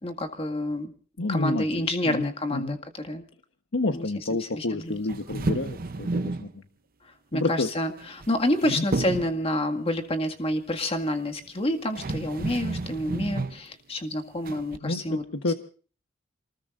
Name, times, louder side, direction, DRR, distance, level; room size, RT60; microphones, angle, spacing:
voice 1, 0.0-0.9 1.3-2.8 3.0-3.2 3.9-4.1 4.5-5.0 7.3-15.2, left 1 dB, 30° left, 4 dB, 1.9 m, -28 dB
voice 2, 1.2-2.8 3.7-6.6 7.3-7.7 8.6-8.9 14.8-15.5, left 2 dB, 85° left, 6 dB, 1.1 m, -29 dB
sound 1, 5.1-6.5 8.0-8.6 8.9-9.4 11.5-11.6 11.9-13.6 14.5-14.8, right 2 dB, 50° right, 0.7 m, -30 dB
28.0 x 20.0 x 2.5 m, 0.41 s
head